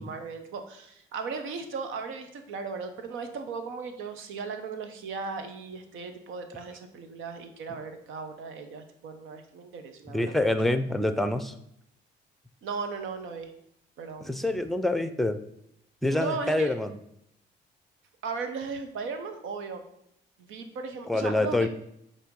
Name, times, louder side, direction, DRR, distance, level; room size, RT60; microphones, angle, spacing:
voice 1, 0.0-10.5 12.6-13.5 14.0-14.3 16.1-16.7 18.2-19.8 20.4-21.7, right 4 dB, 80° right, 7 dB, 0.9 m, -37 dB
voice 2, 10.1-11.5 14.2-15.4 16.0-17.0 21.1-21.7, left 1 dB, ahead, 9 dB, 0.5 m, -26 dB
7.6 x 2.8 x 5.3 m, 0.76 s
cardioid pair, 90°, 20 cm